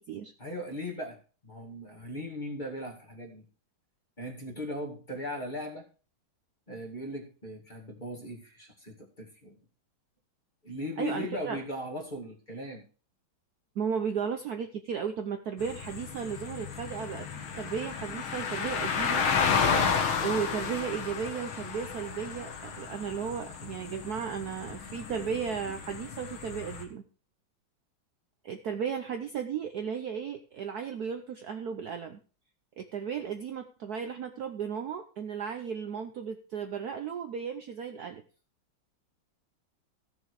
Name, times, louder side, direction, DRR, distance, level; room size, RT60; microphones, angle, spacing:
voice 1, 0.4-3.4 4.2-5.8 6.7-9.6 10.6-12.8, left 1 dB, 25° left, 1 dB, 2.3 m, -38 dB
voice 2, 11.0-11.6 13.8-19.3 20.2-27.0 28.4-32.2 32.8-38.2, right 7 dB, 60° right, 7 dB, 1.1 m, -35 dB
sound 1, 15.6-26.8, left 6 dB, 85° left, 2.3 m, -32 dB
15.0 x 6.8 x 4.8 m, 0.38 s
omnidirectional pair, 2.2 m